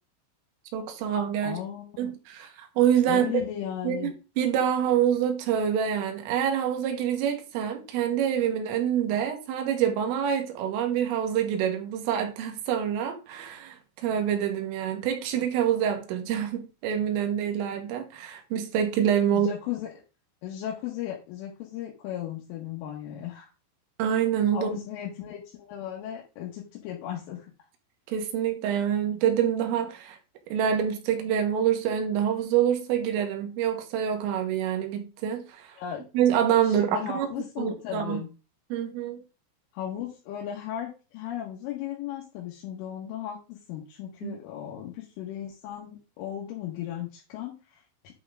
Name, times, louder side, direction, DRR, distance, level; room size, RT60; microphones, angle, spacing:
voice 1, 0.7-1.6 2.0-3.3 3.8-19.5 24.0-24.8 28.1-30.2 30.5-35.8 36.2-37.3 37.6-38.2 38.7-39.2 44.2-44.4, right 9 dB, 80° right, 3.9 m, -26 dB
voice 2, 1.4-2.1 3.1-4.1 19.3-19.9 20.4-23.5 24.5-27.5 35.8-36.0 36.6-38.3 39.7-48.1, left 11 dB, 75° left, 4.0 m, -36 dB
11.0 x 4.8 x 3.8 m
omnidirectional pair, 6.0 m